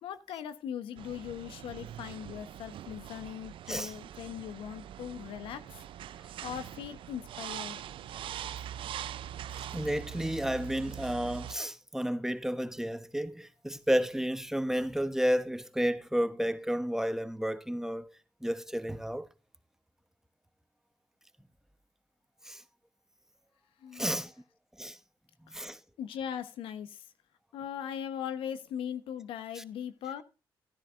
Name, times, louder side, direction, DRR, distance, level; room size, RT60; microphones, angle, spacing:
voice 1, 0.0-5.6 6.4-7.8 23.8-24.2 25.5-25.6 26.0-27.0 27.5-30.2, left 9 dB, 85° left, 1.1 m, -39 dB
sound 1, 1.0-11.5, right 10 dB, 75° right, 0.5 m, -43 dB
voice 2, 9.6-19.3 22.4-22.6 23.9-24.3 24.8-25.0 25.5-25.8 29.6-29.7, equal, 5° right, 1.0 m, -32 dB
15.0 x 10.5 x 2.6 m
supercardioid pair, 60°, 9 cm